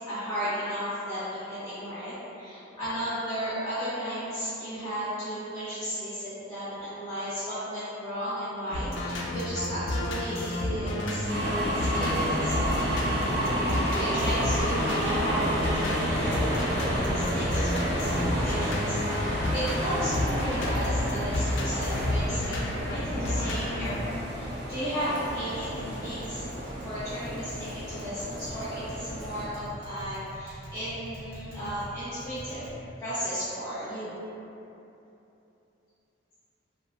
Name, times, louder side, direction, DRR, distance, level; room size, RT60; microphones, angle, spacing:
voice 1, 0.1-11.3 11.7-12.7 13.9-25.7 25.9-26.5 26.8-32.7 33.0-34.2, equal, 15° left, -13 dB, 0.5 m, -34 dB
sound 1, 8.7-24.0, left 1 dB, 80° left, 0.4 m, -31 dB
sound 2, 11.3-29.4, right 1 dB, 60° right, 0.5 m, -31 dB
Tap, 15.9-32.7, equal, 35° right, 0.9 m, -40 dB
2.8 x 2.4 x 2.3 m, 2.9 s
head